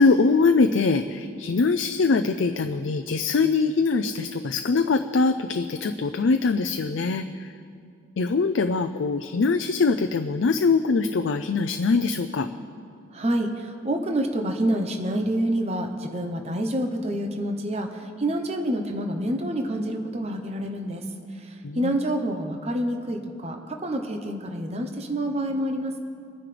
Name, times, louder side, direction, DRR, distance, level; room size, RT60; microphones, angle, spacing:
voice 1, 0.0-7.5 8.2-12.5 21.6-22.0, left 4 dB, 75° left, 8 dB, 0.5 m, -23 dB
voice 2, 13.1-21.1 21.4-26.0, right 1 dB, 35° right, 4 dB, 0.9 m, -27 dB
26.0 x 9.7 x 3.4 m, 2.4 s
head